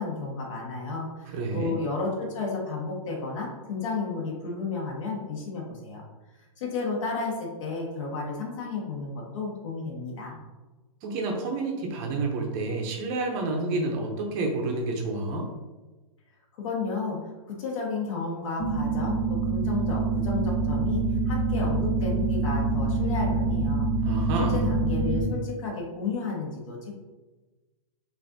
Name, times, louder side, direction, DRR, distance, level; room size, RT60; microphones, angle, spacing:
voice 1, 0.0-6.0 6.6-10.4 16.6-23.9 24.5-26.9, left 4 dB, 60° left, -2 dB, 1.5 m, -32 dB
voice 2, 1.3-1.8 11.0-15.5 24.0-24.7, right 3 dB, 30° right, 1 dB, 0.7 m, -29 dB
sound 1, 18.6-25.2, right 3 dB, 30° left, 1.4 m, -26 dB
6.5 x 2.6 x 2.7 m, 1.2 s
hypercardioid pair, 150°, 18 cm